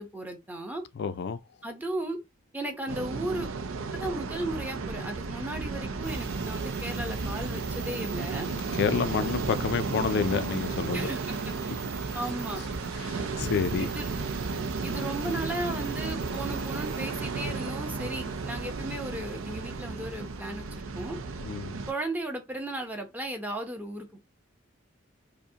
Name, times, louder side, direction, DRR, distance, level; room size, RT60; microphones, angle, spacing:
voice 1, 0.0-0.8 1.6-2.2 2.5-3.5 3.9-8.5 10.9-11.5 12.1-12.6 13.8-14.1 14.8-21.2 21.9-24.3, right 1 dB, 10° right, 0.7 m, -35 dB
voice 2, 1.0-1.4 8.7-11.1 13.0-13.9 21.4-21.8, left 6 dB, 55° left, 0.3 m, -29 dB
sound 1, 2.9-21.9, right 4 dB, 80° right, 0.5 m, -33 dB
sound 2, 6.0-20.6, right 6 dB, 55° right, 0.9 m, -46 dB
4.8 x 2.1 x 2.8 m
head